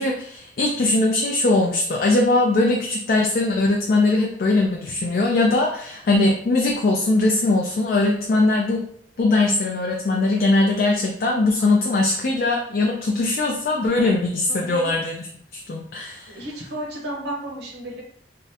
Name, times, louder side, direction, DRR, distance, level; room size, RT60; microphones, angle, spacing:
voice 1, 0.0-8.8 9.2-16.4, left 2 dB, 50° left, 0 dB, 0.4 m, -21 dB
voice 2, 14.5-14.9 16.3-18.0, right 1 dB, 60° right, -2 dB, 0.7 m, -33 dB
3.5 x 2.0 x 2.8 m, 0.64 s
head